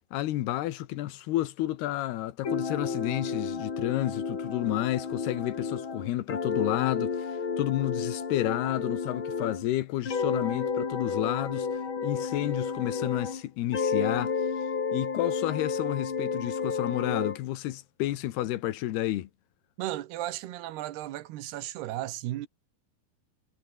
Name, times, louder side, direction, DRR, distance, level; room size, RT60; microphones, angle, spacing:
voice 1, 0.1-11.7 12.0-14.3 14.9-19.3, left 15 dB, 85° left, 3.2 m, -31 dB
sound 1, 2.4-9.7 10.0-13.4 13.7-17.4, left 5 dB, 35° left, 3.2 m, -31 dB
voice 2, 19.8-22.5, right 14 dB, 85° right, 3.3 m, -35 dB
omnidirectional pair, 4.5 m